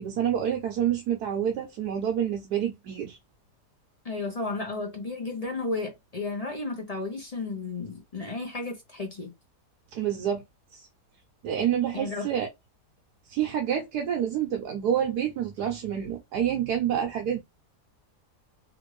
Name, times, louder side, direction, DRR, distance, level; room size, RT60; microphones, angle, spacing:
voice 1, 0.0-3.2 9.9-10.4 10.7-10.9 11.4-12.5 13.3-17.4, right 9 dB, 75° right, 1.3 m, -28 dB
voice 2, 4.0-9.3 11.9-12.3, left 3 dB, 35° left, 0.7 m, -33 dB
3.4 x 2.5 x 3.1 m
omnidirectional pair, 1.8 m